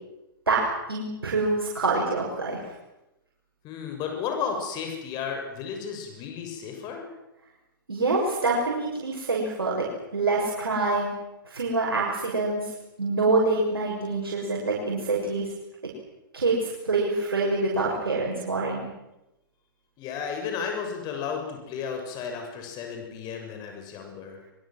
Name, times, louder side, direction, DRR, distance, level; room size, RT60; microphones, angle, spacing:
voice 1, 0.5-2.7 7.9-9.9 10.1-11.2 11.5-12.7 13.0-15.5 16.3-18.9, right 3 dB, 85° right, -3 dB, 6.7 m, -26 dB
voice 2, 3.6-7.0 20.0-24.4, left 6 dB, 35° left, 3 dB, 6.7 m, -33 dB
24.5 x 23.5 x 7.7 m, 0.93 s
hypercardioid pair, 115°, 12 cm